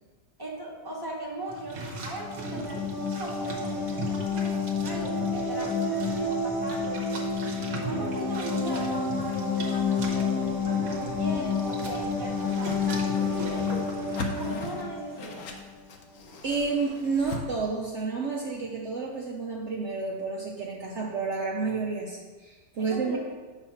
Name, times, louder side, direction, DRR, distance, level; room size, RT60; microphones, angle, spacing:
voice 1, 0.4-7.3 7.8-13.6 14.3-15.4 22.8-23.2, right 1 dB, 15° right, -4 dB, 0.8 m, -39 dB
sound 1, 1.5-14.5, right 2 dB, 45° right, 1.0 m, -40 dB
sound 2, 2.0-15.6, left 4 dB, 30° left, 0.3 m, -29 dB
Whoosh swoosh swish, 12.4-17.4, left 2 dB, 65° left, 0.8 m, -39 dB
voice 2, 16.4-23.2, right 4 dB, 85° right, -2 dB, 0.6 m, -30 dB
8.0 x 3.0 x 5.6 m, 1.4 s
omnidirectional pair, 2.1 m